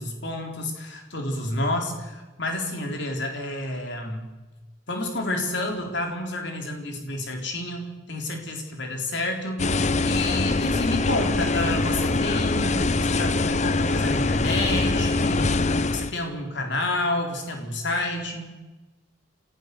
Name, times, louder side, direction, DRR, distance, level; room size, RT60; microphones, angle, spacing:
voice 1, 0.0-4.3 4.9-15.5 15.9-18.5, left 2 dB, 55° left, 3 dB, 3.9 m, -30 dB
sound 1, 9.6-16.1, left 3 dB, 35° left, 0.7 m, -23 dB
29.0 x 14.5 x 6.8 m, 1.1 s
head